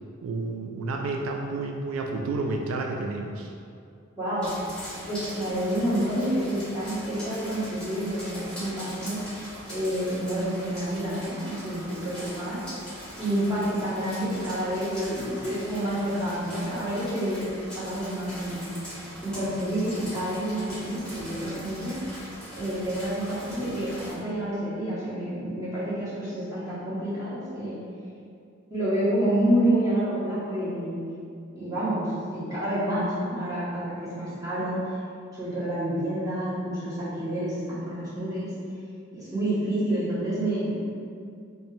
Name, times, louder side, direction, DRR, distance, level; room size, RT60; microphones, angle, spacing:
voice 1, 0.2-3.5, right 3 dB, 70° right, 1 dB, 0.3 m, -30 dB
voice 2, 4.2-4.5 5.1-9.2 9.7-12.6 13.2-17.5 17.7-18.6 19.2-22.0 22.5-27.8 28.7-31.0 31.5-34.9 35.3-38.5 39.1-40.7, right 1 dB, 15° right, -12 dB, 1.4 m, -28 dB
sound 1, 4.4-24.1, equal, 5° left, 1.3 m, -41 dB
4.1 x 2.2 x 3.7 m, 2.4 s
head